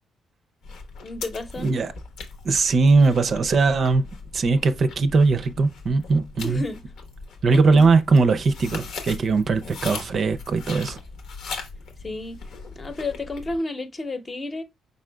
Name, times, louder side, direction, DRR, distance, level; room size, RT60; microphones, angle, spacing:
sound 1, 0.6-13.6, left 4 dB, 80° left, 1.0 m, -39 dB
voice 1, 1.0-1.7 6.4-6.8 7.5-7.9 12.0-12.3 12.8-14.6, left 2 dB, 30° left, 0.8 m, -31 dB
voice 2, 1.6-1.9 2.4-4.1 4.3-6.6 7.4-11.0, right 4 dB, 50° right, 0.5 m, -20 dB
5.4 x 3.7 x 2.2 m
cardioid pair, 90°, 0 cm